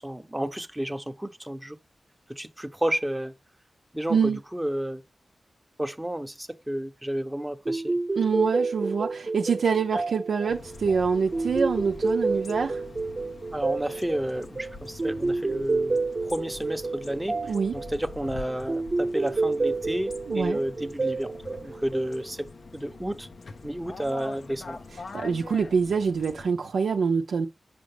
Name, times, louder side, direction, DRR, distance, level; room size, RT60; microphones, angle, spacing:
voice 1, 0.0-1.8 2.3-3.3 3.9-5.0 5.8-8.0 13.5-22.5 22.7-23.3 23.6-24.8, right 1 dB, 10° right, 0.8 m, -31 dB
sound 1, 7.7-22.4, right 3 dB, 40° right, 1.0 m, -29 dB
voice 2, 8.2-12.8 17.4-17.7 20.3-20.6 25.1-27.5, right 5 dB, 85° right, 0.5 m, -25 dB
sound 2, 10.5-26.5, left 3 dB, 65° left, 0.7 m, -44 dB
6.7 x 5.2 x 3.3 m
cardioid pair, 60°, 0 cm